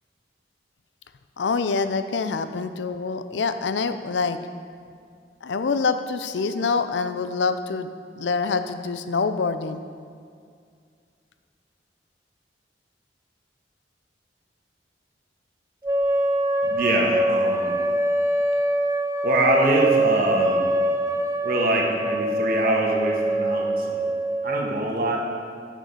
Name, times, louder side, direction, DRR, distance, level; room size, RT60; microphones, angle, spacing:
voice 1, 1.4-4.4 5.4-9.8, left 4 dB, 90° left, 10 dB, 0.5 m, -26 dB
sound 1, 15.8-24.8, right 1 dB, 20° right, 0.4 m, -24 dB
voice 2, 16.7-17.8 19.2-20.7 21.4-24.1 24.4-25.3, right 1 dB, 55° right, -1 dB, 1.4 m, -24 dB
9.1 x 6.4 x 5.3 m, 2.2 s
head